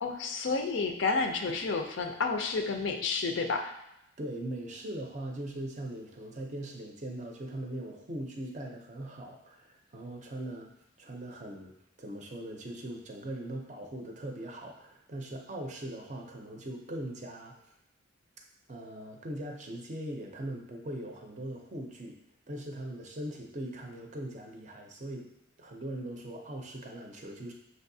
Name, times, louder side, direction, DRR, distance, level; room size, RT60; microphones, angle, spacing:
voice 1, 0.0-3.7, left 4 dB, 60° left, 4 dB, 0.4 m, -30 dB
voice 2, 4.2-10.7 11.0-17.6 18.7-22.2 22.5-25.3 25.6-27.5, right 1 dB, 35° right, 1 dB, 0.5 m, -40 dB
6.3 x 2.7 x 2.7 m, 0.82 s
head